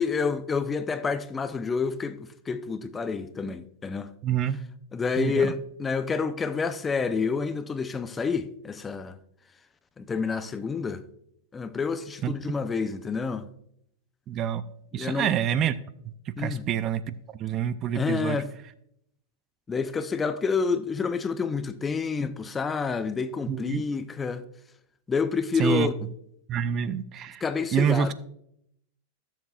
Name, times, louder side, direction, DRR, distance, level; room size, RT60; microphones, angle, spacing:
voice 1, 0.0-4.1 4.9-9.2 10.0-11.0 11.5-13.4 15.0-15.3 16.4-16.7 17.9-18.5 19.7-24.4 25.1-25.9 27.4-28.1, left 5 dB, 15° left, 0.6 m, -28 dB
voice 2, 4.2-4.6 5.2-5.5 12.2-12.3 14.3-14.6 14.9-15.7 16.3-17.1 17.4-18.4 23.5-23.8 25.6-25.9 26.5-27.4 27.7-28.1, right 9 dB, 35° right, 0.4 m, -27 dB
15.5 x 7.2 x 2.4 m
hypercardioid pair, 120°, 0 cm